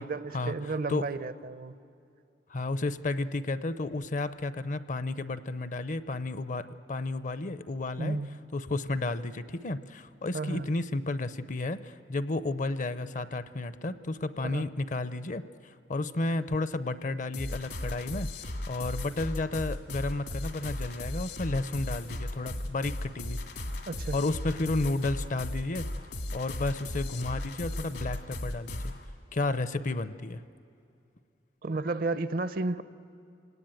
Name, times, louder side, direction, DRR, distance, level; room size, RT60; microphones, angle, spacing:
voice 1, 0.0-1.8 8.0-8.3 10.3-10.7 14.5-14.7 23.9-24.2 31.6-32.8, right 3 dB, 55° right, 14 dB, 0.6 m, -32 dB
voice 2, 2.5-8.2 8.5-23.4 24.1-25.9 26.3-28.9 29.3-30.4, left 2 dB, 45° left, 14 dB, 0.6 m, -32 dB
sound 1, 17.3-29.0, left 1 dB, 80° left, 2.1 m, -36 dB
28.0 x 18.0 x 9.0 m, 2.6 s
head